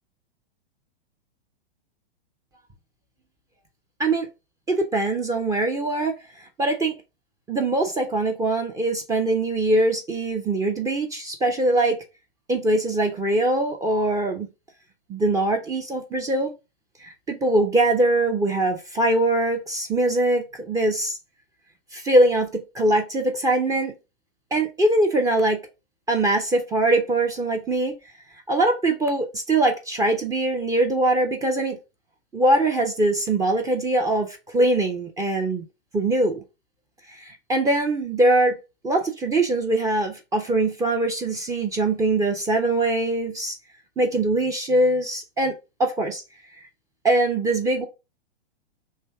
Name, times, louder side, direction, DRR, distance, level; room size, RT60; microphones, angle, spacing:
voice 1, 4.7-6.1 6.6-6.9 7.5-12.0 12.5-14.5 15.1-16.5 17.0-21.2 21.9-23.9 24.5-25.6 26.1-27.9 28.5-31.8 32.3-35.6 35.9-36.4 37.1-38.6 38.8-43.6 44.0-45.5 45.8-46.2 47.0-47.9, right 2 dB, 10° right, 0.5 m, -22 dB
3.3 x 2.7 x 4.5 m
figure-of-eight pair, 110°, 31 cm